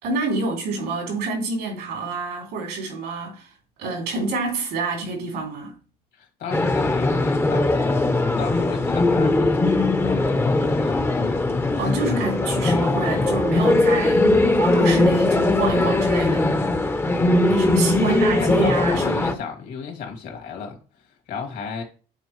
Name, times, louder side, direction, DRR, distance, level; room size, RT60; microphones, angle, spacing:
voice 1, 0.0-3.5 3.8-5.7 11.8-14.3 14.6-16.5 17.5-19.4, right 3 dB, 85° right, 3.1 m, -27 dB
voice 2, 6.1-11.4 12.1-12.9 13.5-13.8 17.4-21.8, left 5 dB, 70° left, 2.4 m, -35 dB
sound 1, 6.5-19.3, left 2 dB, 15° left, 0.7 m, -20 dB
8.3 x 4.2 x 3.1 m
cardioid pair, 110°, 17 cm